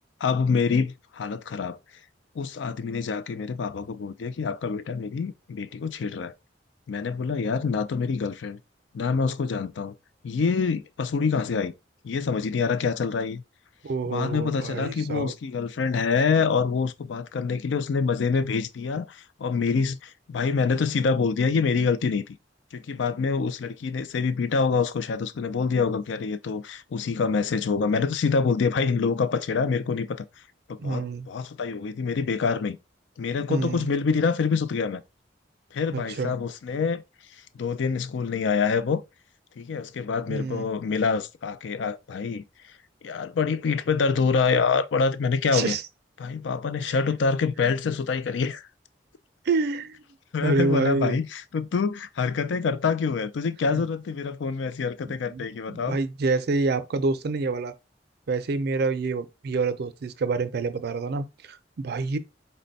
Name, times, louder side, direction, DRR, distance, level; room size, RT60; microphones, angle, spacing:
voice 1, 0.2-1.8 2.4-6.3 6.9-8.6 8.9-9.9 10.2-11.7 12.0-13.4 14.1-22.4 22.7-30.2 30.7-32.8 33.2-35.0 35.7-37.0 37.6-39.0 39.6-42.4 43.0-45.7 46.2-48.7 50.3-56.0, left 5 dB, 75° left, 0.4 m, -26 dB
voice 2, 13.8-15.3 30.8-31.3 33.5-33.9 35.9-36.4 40.3-40.7 45.5-45.8 46.8-47.0 49.5-50.0 50.4-51.2 53.7-53.8 55.0-57.7 58.3-62.2, right 3 dB, 60° right, 0.4 m, -27 dB
4.2 x 2.2 x 4.0 m
head